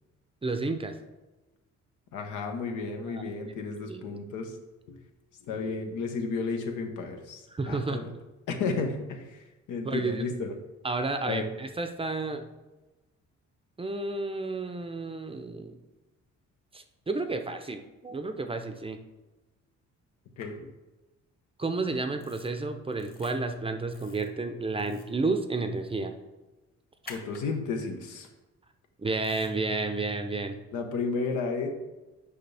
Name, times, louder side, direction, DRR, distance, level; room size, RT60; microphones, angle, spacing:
voice 1, 0.4-0.9 3.1-3.5 3.9-4.2 7.5-8.1 9.8-10.3 10.8-12.4 13.8-15.8 16.7-19.0 21.6-26.1 29.0-30.6, right 3 dB, 20° right, 7 dB, 0.5 m, -31 dB
voice 2, 2.1-4.6 4.9-5.0 5.4-8.1 8.5-10.5 11.3-11.5 20.4-20.7 27.1-28.3 30.7-31.7, left 4 dB, 85° left, 4 dB, 1.0 m, -33 dB
sound 1, 20.4-20.5 22.2-22.5 22.9-23.3 23.9-24.3 24.8-25.1 27.0-27.4 29.2-29.5, left 3 dB, 30° left, 1.4 m, -48 dB
6.6 x 5.2 x 3.3 m, 1.1 s
cardioid pair, 90°, 30 cm